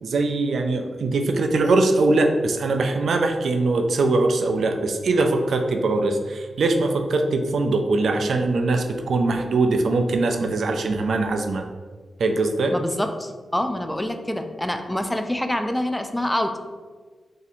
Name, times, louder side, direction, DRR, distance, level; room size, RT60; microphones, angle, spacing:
voice 1, 0.0-11.6 12.2-12.7, right 3 dB, 75° right, 5 dB, 0.4 m, -22 dB
voice 2, 12.7-16.6, left 1 dB, 10° left, 6 dB, 0.4 m, -26 dB
2.8 x 2.6 x 4.0 m, 1.5 s
cardioid pair, 60°, 0 cm